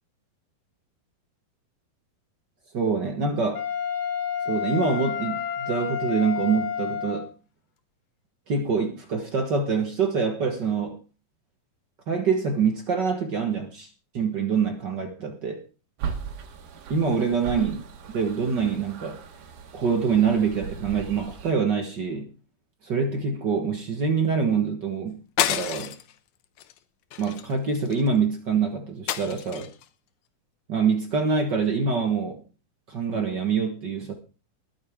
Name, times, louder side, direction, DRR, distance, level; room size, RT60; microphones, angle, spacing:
voice 1, 2.7-3.6 4.4-7.3 8.5-11.0 12.1-13.9 14.1-15.6 16.9-17.8 18.1-19.2 19.7-22.3 22.8-25.2 25.5-26.0 27.2-29.7 30.7-32.4 32.9-34.1, right 5 dB, 60° right, 1.1 m, -25 dB
Wind instrument woodwind instrument, 3.5-7.3, left 8 dB, 60° left, 1.7 m, -29 dB
sound 1, 16.0-21.5, right 7 dB, 90° right, 3.7 m, -38 dB
sound 2, 25.4-26.1 26.6-26.8 27.1-28.1 29.1-29.8, left 12 dB, 80° left, 1.6 m, -29 dB
21.0 x 8.7 x 3.6 m
omnidirectional pair, 4.1 m